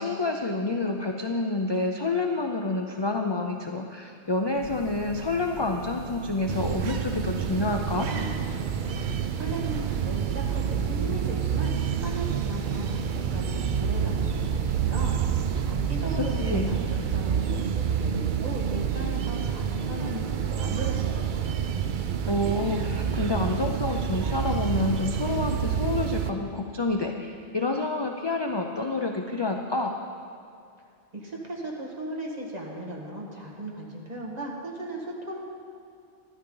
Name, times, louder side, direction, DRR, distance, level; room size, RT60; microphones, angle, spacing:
voice 1, 0.0-8.1 16.2-16.7 22.3-30.0, left 2 dB, 35° left, 3 dB, 0.5 m, -28 dB
sound 1, 4.3-16.1, right 7 dB, 90° right, 1.0 m, -41 dB
sound 2, 6.5-26.3, right 7 dB, 60° right, 0.6 m, -28 dB
voice 2, 9.3-15.2 15.6-21.6 31.1-35.4, right 1 dB, 40° right, -2 dB, 1.7 m, -37 dB
12.5 x 11.5 x 3.9 m, 2.4 s
omnidirectional pair, 1.1 m